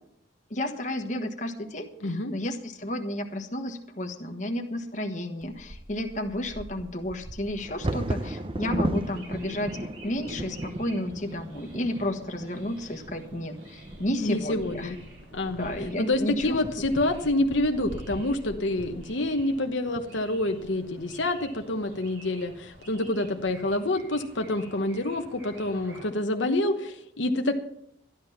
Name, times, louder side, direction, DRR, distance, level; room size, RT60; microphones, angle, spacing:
voice 1, 0.5-9.8 10.0-14.9 15.6-16.6, left 1 dB, 40° left, 4 dB, 1.4 m, -32 dB
voice 2, 2.0-2.3 14.2-15.0 15.3-15.7 16.0-27.6, left 1 dB, 75° left, 5 dB, 1.1 m, -27 dB
Bird vocalization bird call bird song / Wind / Thunder, 5.4-21.3 21.9-22.0 22.4-22.8 23.2-23.7, right 1 dB, 25° right, 0.7 m, -37 dB
sound 1, 8.9-26.1, right 1 dB, 85° right, 4.5 m, -51 dB
13.5 x 11.0 x 5.8 m, 0.73 s
head